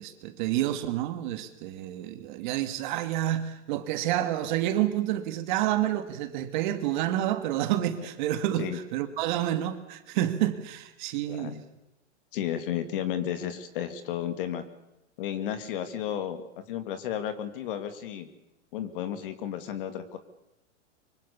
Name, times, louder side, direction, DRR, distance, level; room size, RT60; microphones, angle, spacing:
voice 1, 0.0-11.6, right 12 dB, 40° right, 9 dB, 1.8 m, -29 dB
voice 2, 11.3-11.6 12.3-14.6 15.2-18.3 18.7-20.2, left 10 dB, 45° left, 10 dB, 2.2 m, -33 dB
24.5 x 24.5 x 7.0 m, 0.90 s
hypercardioid pair, 160°, 37 cm